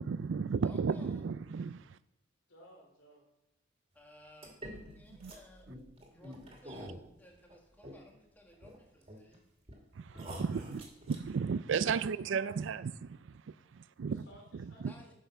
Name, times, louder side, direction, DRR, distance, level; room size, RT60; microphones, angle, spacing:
voice 1, 0.0-2.0 5.2-5.3 10.0-14.3 14.6-14.9, right 6 dB, 70° right, 0.4 m, -34 dB
voice 2, 0.6-1.3 3.9-5.7 6.1-6.9 7.2-9.4 14.8-15.1, left 1 dB, 10° left, 1.7 m, -57 dB
voice 3, 2.5-3.2 10.1-11.0 11.8-12.5 14.1-15.1, equal, 85° left, 3.0 m, -58 dB
sound 1, 4.4-8.2 8.5-9.4 9.7-9.8 10.1-11.3, equal, 30° right, 2.3 m, -47 dB
10.0 x 5.5 x 6.1 m
head